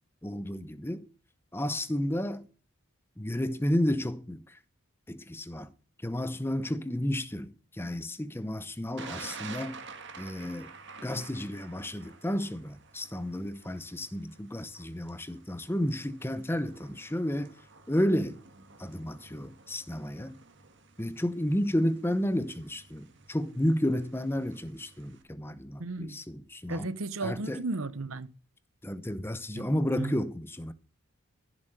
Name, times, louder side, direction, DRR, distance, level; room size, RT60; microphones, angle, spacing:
voice 1, 0.2-1.1 1.5-2.5 3.2-4.6 5.1-5.7 6.0-9.8 10.2-10.7 11.0-17.5 17.9-18.4 18.8-20.3 21.0-26.9 27.2-27.6 28.8-30.7, left 1 dB, 10° left, 0.7 m, -32 dB
Thunder, 9.0-25.2, right 4 dB, 55° right, 1.9 m, -50 dB
voice 2, 25.8-26.2 26.7-28.3 29.5-29.6 30.0-30.2, right 3 dB, 70° right, 0.8 m, -34 dB
15.0 x 7.3 x 6.6 m
head